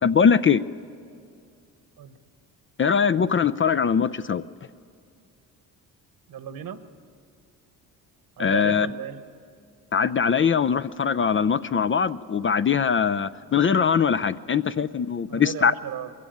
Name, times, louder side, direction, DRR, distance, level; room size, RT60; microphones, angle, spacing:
voice 1, 0.0-0.6 2.8-4.4 8.4-8.9 9.9-15.7, left 6 dB, 30° left, 13 dB, 0.5 m, -21 dB
voice 2, 6.3-6.8 8.4-9.2 15.3-16.1, right 9 dB, 60° right, 11 dB, 1.4 m, -35 dB
21.5 x 16.0 x 9.2 m, 2.4 s
supercardioid pair, 75°, 40 cm